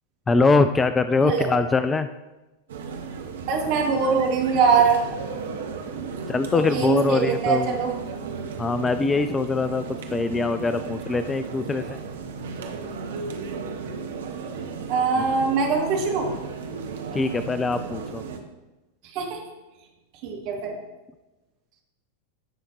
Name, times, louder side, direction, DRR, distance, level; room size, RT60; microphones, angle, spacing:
voice 1, 0.3-2.1 6.3-7.7 8.6-9.8 10.1-12.0 17.1-18.2, left 3 dB, 15° left, 11 dB, 0.4 m, -22 dB
sound 1, 2.7-18.4, right 5 dB, 60° right, 1.1 m, -34 dB
voice 2, 3.5-5.0 6.5-7.9 14.9-16.3 19.1-19.4 20.2-20.8, right 5 dB, 45° right, -1 dB, 2.4 m, -22 dB
16.5 x 5.6 x 3.1 m, 1.1 s
figure-of-eight pair, 90°, 0 cm